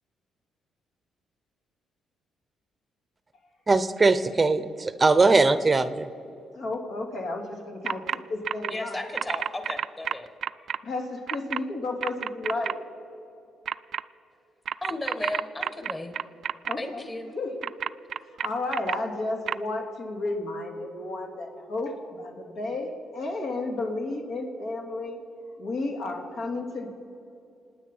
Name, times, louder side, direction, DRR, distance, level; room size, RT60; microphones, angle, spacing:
voice 1, 3.7-6.1, right 3 dB, 25° right, 13 dB, 0.7 m, -21 dB
voice 2, 6.5-9.0 10.6-12.8 16.6-17.1 17.3-17.5 18.2-25.2 25.6-26.9, left 2 dB, 70° left, 1 dB, 2.9 m, -32 dB
sound 1, 7.9-8.2 8.4-8.7 9.2-10.8 11.3-11.6 12.0-12.7 13.7-14.0 14.7-16.7 17.6-19.0 19.5-19.6, right 9 dB, 60° right, 0.3 m, -29 dB
voice 3, 8.7-10.3 14.8-16.1 16.8-17.3, left 1 dB, 20° left, 7 dB, 1.8 m, -34 dB
27.5 x 9.3 x 5.5 m, 2.8 s
cardioid pair, 90°, 0 cm